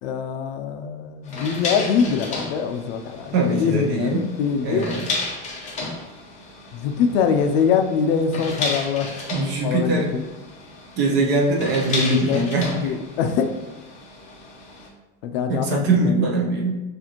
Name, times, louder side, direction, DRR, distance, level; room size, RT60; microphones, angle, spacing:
voice 1, 0.0-4.9 6.7-10.2 11.9-12.5 12.7-13.5 15.2-16.3, left 6 dB, 60° left, 6 dB, 0.5 m, -24 dB
sound 1, 1.2-14.9, left 3 dB, 20° left, 0.9 m, -33 dB
voice 2, 3.3-4.3 4.6-5.1 9.3-10.1 11.0-12.7 15.5-16.7, right 2 dB, 30° right, 0 dB, 0.6 m, -22 dB
6.5 x 2.5 x 2.9 m, 1.1 s
cardioid pair, 175°, 33 cm